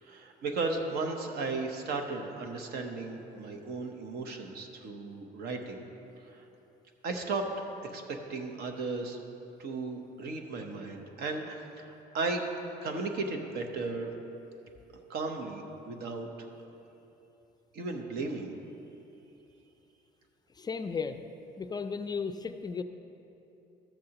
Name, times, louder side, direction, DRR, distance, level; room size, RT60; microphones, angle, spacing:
voice 1, 0.0-5.8 6.3-6.4 7.0-7.5 7.8-9.2 9.6-12.4 12.8-14.1 15.1-16.3 17.7-18.5, right 3 dB, 70° right, 4 dB, 0.9 m, -35 dB
voice 2, 20.5-21.2 21.6-22.8, left 5 dB, 25° left, 8 dB, 0.3 m, -34 dB
13.0 x 7.6 x 2.9 m, 2.9 s
cardioid pair, 110°, 17 cm